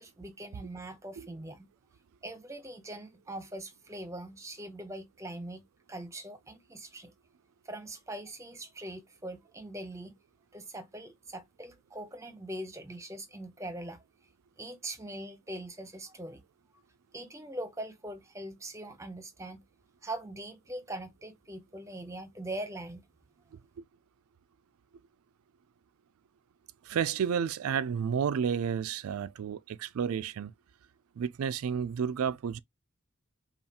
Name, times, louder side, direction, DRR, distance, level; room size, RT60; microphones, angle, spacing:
voice 1, 0.0-1.7 2.2-5.6 5.9-7.1 7.6-10.2 10.5-14.0 14.6-16.4 17.1-19.6 20.0-23.0, right 1 dB, 15° right, 0.7 m, -42 dB
voice 2, 26.9-30.5 31.2-32.6, right 7 dB, 90° right, 0.4 m, -31 dB
5.5 x 2.4 x 2.8 m
head